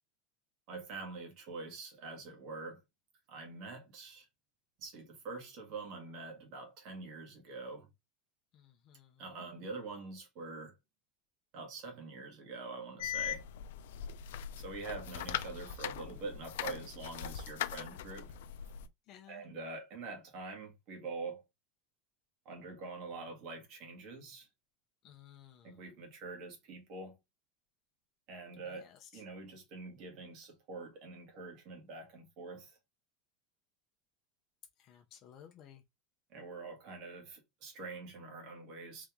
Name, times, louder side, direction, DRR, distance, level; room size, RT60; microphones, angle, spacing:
voice 1, 0.7-2.8 3.3-4.3 4.8-7.9 9.2-10.8 11.5-13.5 14.6-18.4 19.3-21.4 22.4-24.5 25.6-27.2 28.3-32.8 36.3-39.1, right 3 dB, 40° right, 1.7 m, -45 dB
voice 2, 8.5-9.4 19.1-19.4 25.0-25.7 28.8-29.1 34.8-35.8, left 10 dB, 30° left, 0.7 m, -57 dB
sound 1, 13.0-18.9, left 10 dB, 85° left, 0.5 m, -40 dB
4.0 x 3.2 x 3.6 m
supercardioid pair, 175°, 0 cm